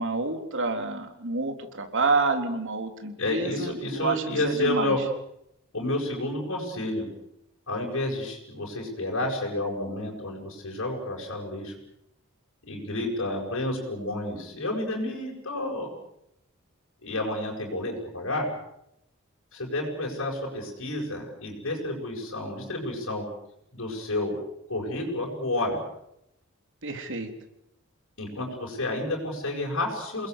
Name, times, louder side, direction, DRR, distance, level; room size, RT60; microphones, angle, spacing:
voice 1, 0.0-5.0 26.8-27.3, right 3 dB, 60° right, 6 dB, 3.7 m, -28 dB
voice 2, 3.2-5.0 5.7-7.0 7.7-11.7 12.6-15.9 17.0-18.5 19.5-23.2 23.7-24.3 24.7-25.8 28.2-30.3, left 1 dB, 65° left, -2 dB, 7.6 m, -30 dB
28.5 x 20.5 x 8.3 m, 0.81 s
head